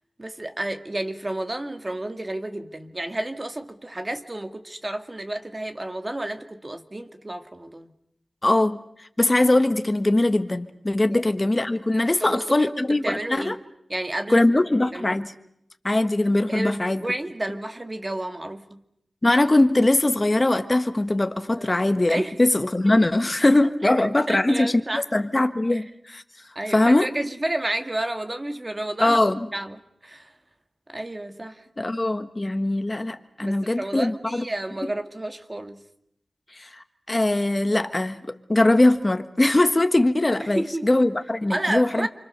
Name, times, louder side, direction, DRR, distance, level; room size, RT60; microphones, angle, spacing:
voice 1, 0.2-7.9 11.1-11.2 12.2-13.6 13.9-14.4 14.9-15.2 16.5-18.8 21.6-21.8 22.1-22.3 22.9-23.0 23.8-25.0 25.7-25.8 26.6-29.2 29.5-30.3 30.9-31.6 33.4-35.8 40.4-40.9 41.5-42.1, right 1 dB, 35° right, 2.2 m, -31 dB
voice 2, 8.4-8.8 9.2-13.5 14.3-15.3 15.8-17.0 19.2-26.2 26.7-27.1 29.0-29.5 31.8-34.4 36.5-36.7 37.1-42.1, left 2 dB, 35° left, 1.5 m, -21 dB
29.5 x 24.5 x 6.8 m
cardioid pair, 45°, 0 cm